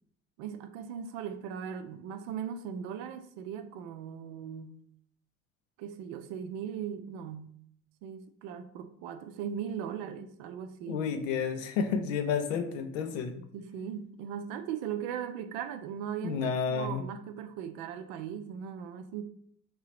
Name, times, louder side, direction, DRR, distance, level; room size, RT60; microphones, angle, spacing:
voice 1, 0.4-4.8 5.8-7.5 8.0-11.0 13.3-19.2, right 8 dB, 60° right, 9 dB, 0.5 m, -39 dB
voice 2, 10.9-13.3 16.2-17.0, left 6 dB, 70° left, 7 dB, 0.6 m, -31 dB
4.6 x 2.8 x 3.1 m, 0.65 s
figure-of-eight pair, 55°, 40 cm